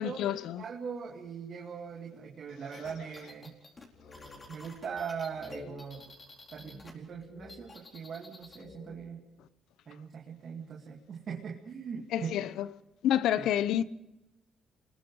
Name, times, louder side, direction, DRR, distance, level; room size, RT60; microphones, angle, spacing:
voice 1, 0.0-0.6 12.1-12.7 13.0-13.8, left 11 dB, 85° left, 0.7 m, -28 dB
voice 2, 0.6-3.6 4.5-6.1 6.5-9.2 9.9-12.4 13.4-13.5, right 6 dB, 60° right, 2.3 m, -40 dB
sound 1, 2.7-6.9 7.2-8.6, left 2 dB, 30° left, 4.5 m, -51 dB
sound 2, 2.8-3.7 3.9-4.9 5.3-8.1 8.4-9.4, left 4 dB, 55° left, 3.1 m, -53 dB
27.5 x 21.0 x 4.8 m
cardioid pair, 90°, 0 cm